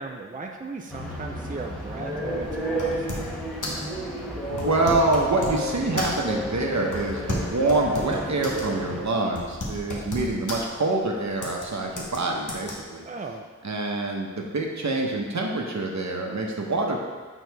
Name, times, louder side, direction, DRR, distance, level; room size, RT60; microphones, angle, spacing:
voice 1, 0.0-3.4 13.1-13.5, right 3 dB, 25° right, 2 dB, 0.5 m, -37 dB
sound 1, 0.9-9.0, equal, ahead, 1.3 m, -32 dB
sound 2, 2.4-3.4 3.6-3.9 4.5-5.6 6.0-6.4 6.9-8.7 9.0-9.1 9.4-10.7 11.4-11.7 12.0-12.2 12.5-12.7, left 2 dB, 80° left, 1.2 m, -33 dB
voice 2, 4.5-13.1 13.6-17.0, right 2 dB, 65° right, 0 dB, 1.0 m, -26 dB
6.4 x 4.0 x 4.6 m, 1.5 s
wide cardioid pair, 55°, 30 cm